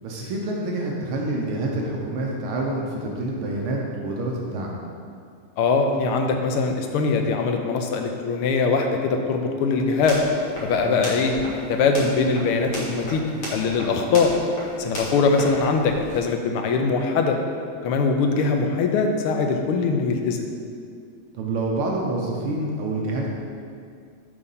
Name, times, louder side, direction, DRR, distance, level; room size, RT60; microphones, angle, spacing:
voice 1, 0.0-4.7 10.8-11.0 21.3-23.3, right 2 dB, 75° right, -2 dB, 1.7 m, -27 dB
voice 2, 5.6-10.2 10.6-11.4 11.7-13.2 13.5-14.3 14.8-17.4 17.8-20.4, left 4 dB, 80° left, 4 dB, 1.6 m, -22 dB
sound 1, 9.9-16.2, equal, 65° left, 2.6 m, -36 dB
6.8 x 5.0 x 5.5 m, 2.3 s
omnidirectional pair, 2.4 m